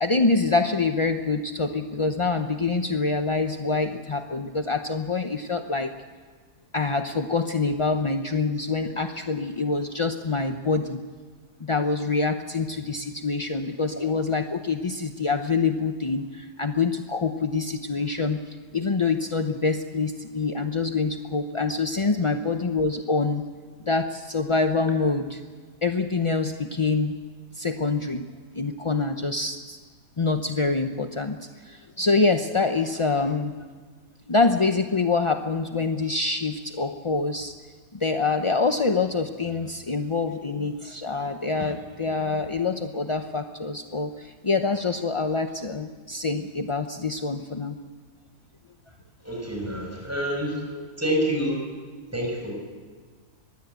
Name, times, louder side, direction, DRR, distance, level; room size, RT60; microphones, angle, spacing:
voice 1, 0.0-5.9 6.7-11.0 11.6-23.4 23.9-25.4 25.8-27.1 27.5-28.3 28.5-29.8 30.2-33.5 34.3-37.5 37.9-47.8, left 4 dB, 35° left, 6 dB, 0.5 m, -25 dB
voice 2, 49.2-50.6 51.0-51.6 52.1-52.5, equal, 10° right, 1 dB, 6.1 m, -27 dB
24.0 x 20.0 x 8.2 m, 1.5 s
omnidirectional pair, 1.7 m